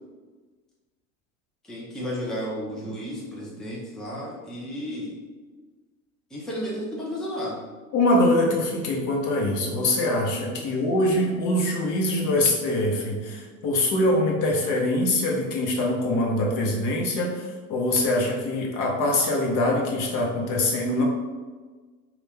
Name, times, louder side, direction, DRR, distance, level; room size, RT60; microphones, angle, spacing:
voice 1, 1.6-5.2 6.3-7.6 10.6-10.8, equal, ahead, -5 dB, 0.6 m, -33 dB
voice 2, 7.9-21.0, left 1 dB, 45° left, -1 dB, 0.9 m, -23 dB
2.6 x 2.4 x 3.6 m, 1.4 s
hypercardioid pair, 85°, 44 cm